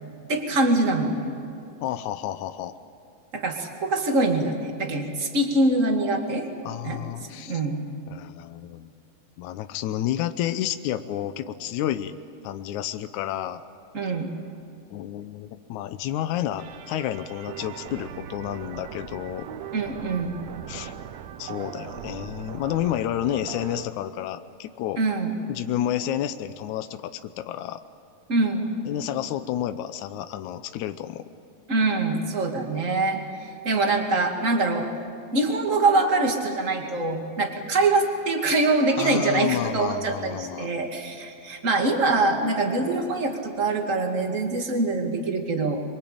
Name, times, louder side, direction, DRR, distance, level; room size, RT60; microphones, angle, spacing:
voice 1, 0.3-1.3 3.3-6.5 6.8-7.0 7.5-7.8 13.9-14.3 19.7-20.3 25.0-25.3 28.3-28.6 31.7-34.9 35.3-45.8, right 2 dB, 25° right, 3 dB, 2.1 m, -24 dB
voice 2, 1.8-2.8 6.6-7.6 8.1-8.9 9.4-12.1 12.4-13.6 14.0-14.1 14.9-19.6 20.7-20.9 21.4-25.0 25.5-27.8 28.9-31.2 39.0-40.7, left 11 dB, 85° left, 10 dB, 1.7 m, -30 dB
sound 1, 16.6-23.9, right 9 dB, 80° right, 1.5 m, -39 dB
26.5 x 23.5 x 8.7 m, 2.6 s
omnidirectional pair, 4.4 m